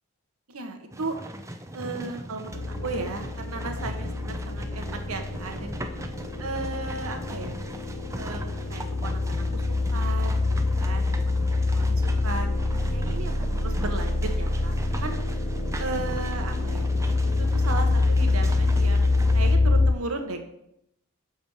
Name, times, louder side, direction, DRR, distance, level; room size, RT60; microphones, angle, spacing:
voice 1, 0.5-1.2 1.7-6.0 6.4-7.6 8.1-10.4 10.7-15.1 15.8-16.9 17.4-20.5, right 3 dB, 75° right, 5 dB, 1.1 m, -35 dB
sound 1, 0.9-19.6, right 1 dB, 15° right, 0.5 m, -39 dB
sound 2, 2.5-19.9, left 2 dB, 40° left, 0.6 m, -25 dB
6.8 x 5.2 x 5.5 m, 0.78 s
head